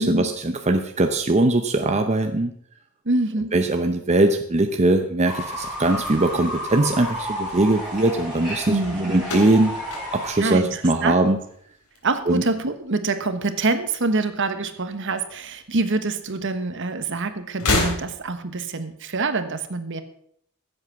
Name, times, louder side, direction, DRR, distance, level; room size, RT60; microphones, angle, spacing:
voice 1, 0.0-2.5 3.5-9.7 10.1-11.4 12.3-12.4, right 2 dB, 30° right, 6 dB, 0.7 m, -21 dB
voice 2, 3.0-3.5 8.7-9.3 10.4-11.3 12.0-20.0, right 3 dB, 55° right, 9 dB, 1.3 m, -25 dB
Fowl / Bird, 5.3-10.3, equal, 5° right, 5.0 m, -32 dB
sound 1, 9.2-11.5 11.8-12.4 13.5-14.5 14.8-14.9 16.0-16.1 17.5-18.5, left 2 dB, 90° left, 3.5 m, -29 dB
15.5 x 8.0 x 5.8 m, 0.67 s
head